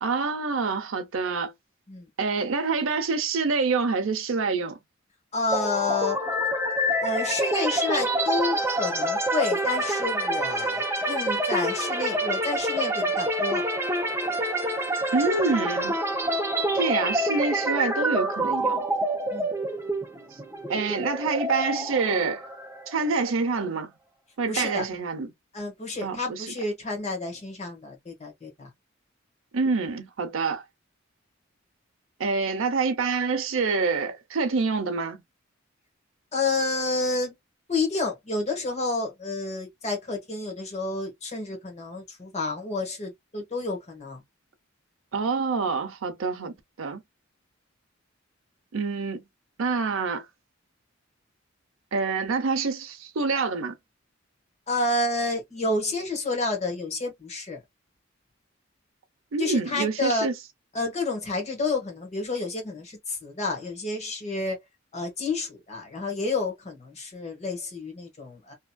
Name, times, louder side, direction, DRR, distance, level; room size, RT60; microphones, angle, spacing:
voice 1, 0.0-1.5 2.2-4.8 15.1-15.9 16.7-18.8 20.7-22.4 22.9-23.9 24.4-25.3 26.0-26.5 29.5-30.6 32.2-35.2 45.1-47.0 48.7-49.2 49.6-50.3 51.9-53.7 59.3-60.3, right 4 dB, 75° right, 0.6 m, -26 dB
voice 2, 5.3-6.2 7.0-13.6 19.3-19.5 24.5-24.9 25.5-28.7 36.3-37.3 37.7-44.2 54.7-57.6 59.4-60.3 60.7-64.6 64.9-68.5, left 3 dB, 35° left, 1.4 m, -29 dB
sound 1, 5.5-23.3, right 1 dB, 10° right, 0.6 m, -27 dB
2.9 x 2.5 x 2.2 m
head